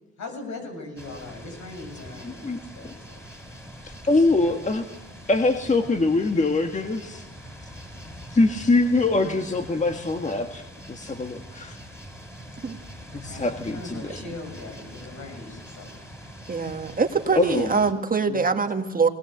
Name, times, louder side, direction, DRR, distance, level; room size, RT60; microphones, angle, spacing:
voice 1, 0.2-3.2 4.4-4.5 5.6-5.9 8.3-8.4 13.2-16.0, left 3 dB, 65° left, 4 dB, 7.6 m, -40 dB
sound 1, 1.0-17.9, equal, 10° left, 5.6 m, -43 dB
voice 2, 2.2-2.9 3.8-4.8 5.3-7.3 8.3-10.6 10.9-11.8 13.1-14.2 17.3-17.8, left 2 dB, 25° left, 5 dB, 1.7 m, -23 dB
voice 3, 16.5-19.1, right 5 dB, 30° right, 5 dB, 1.8 m, -23 dB
20.0 x 19.5 x 8.1 m, 1.1 s
cardioid pair, 90°, 30 cm